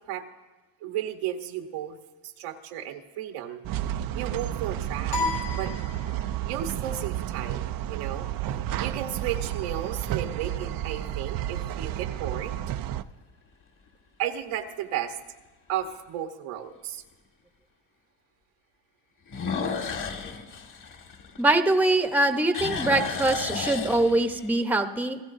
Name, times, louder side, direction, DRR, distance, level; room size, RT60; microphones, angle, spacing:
voice 1, 0.8-2.0 2.2-3.6 3.9-5.2 5.5-5.7 6.4-12.5 14.2-15.2 15.7-17.0, right 10 dB, 80° right, 6 dB, 1.3 m, -34 dB
sound 1, 3.6-13.0, right 12 dB, 45° right, 0.5 m, -31 dB
sound 2, 5.1-6.6, left 3 dB, 70° left, 6.6 m, -32 dB
sound 3, 5.6-6.3 7.0-7.1 12.3-12.7 13.2-13.3 13.9-14.0 14.2-14.3 15.8-15.9 19.3-21.8 22.1-24.5, left 5 dB, 40° left, 1.8 m, -33 dB
voice 2, 21.4-25.2, right 2 dB, 5° right, 6 dB, 0.9 m, -23 dB
28.0 x 16.0 x 2.7 m, 1.2 s
cardioid pair, 105°, 48 cm